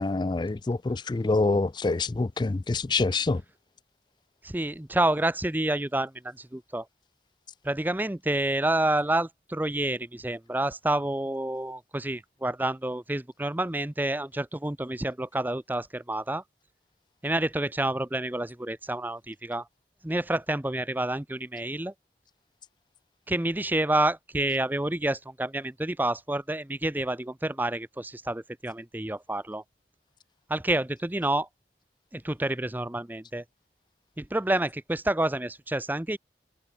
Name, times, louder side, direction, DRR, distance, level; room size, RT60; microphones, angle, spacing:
voice 1, 0.0-3.4, left 3 dB, 25° left, 0.4 m, -26 dB
voice 2, 4.4-6.8 7.6-16.4 17.2-19.6 20.0-21.9 23.3-29.6 30.5-31.5 32.1-33.4 34.2-36.2, right 1 dB, 10° right, 0.6 m, -28 dB
head